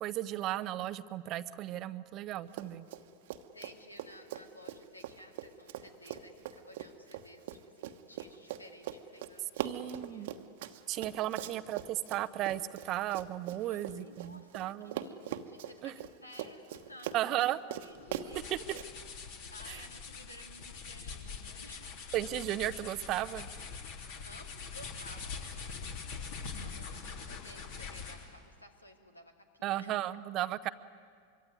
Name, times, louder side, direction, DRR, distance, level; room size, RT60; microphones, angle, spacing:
voice 1, 0.0-2.9 9.6-10.3 10.9-15.0 15.8-15.9 17.1-17.6 18.5-18.8 19.7-19.8 22.1-23.5 29.6-30.7, right 13 dB, 35° right, 14 dB, 0.7 m, -35 dB
Run, 2.5-3.0 3.3-14.7 14.9-18.9, right 11 dB, 55° right, 1.2 m, -41 dB
voice 2, 3.5-10.3 11.3-12.0 13.6-18.6 19.5-22.0 23.9-25.9 26.5-29.9, left 1 dB, 80° left, 5 dB, 2.3 m, -55 dB
sound 1, 17.9-28.3, left 5 dB, 50° left, 3.3 m, -43 dB
25.0 x 23.5 x 9.5 m, 2.1 s
figure-of-eight pair, 90°, 0 cm